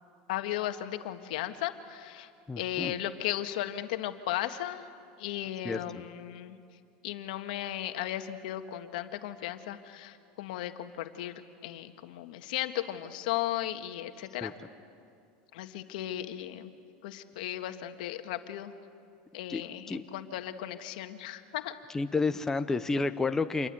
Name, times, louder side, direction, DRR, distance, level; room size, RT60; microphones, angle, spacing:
voice 1, 0.3-2.3 2.6-4.9 5.2-6.6 7.0-11.3 11.6-14.5 15.5-16.7 17.0-18.7 19.3-21.7, left 13 dB, 75° left, 7 dB, 1.7 m, -36 dB
voice 2, 2.5-3.0 5.6-5.8 14.4-14.5 19.5-19.6 19.9-20.0 21.9-23.7, left 3 dB, 10° left, 9 dB, 0.9 m, -30 dB
27.5 x 22.5 x 9.2 m, 2.3 s
supercardioid pair, 135°, 4 cm